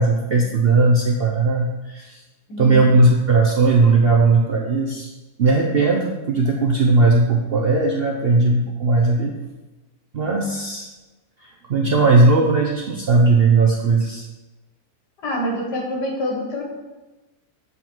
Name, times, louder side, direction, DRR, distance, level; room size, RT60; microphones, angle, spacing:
voice 1, 0.0-2.2 2.6-5.1 5.4-9.3 10.1-10.9 11.4-14.3, right 3 dB, 60° right, -1 dB, 0.6 m, -17 dB
voice 2, 2.5-2.9 15.2-16.6, equal, 85° left, -1 dB, 2.0 m, -26 dB
7.4 x 4.0 x 4.4 m, 1.1 s
omnidirectional pair, 1.8 m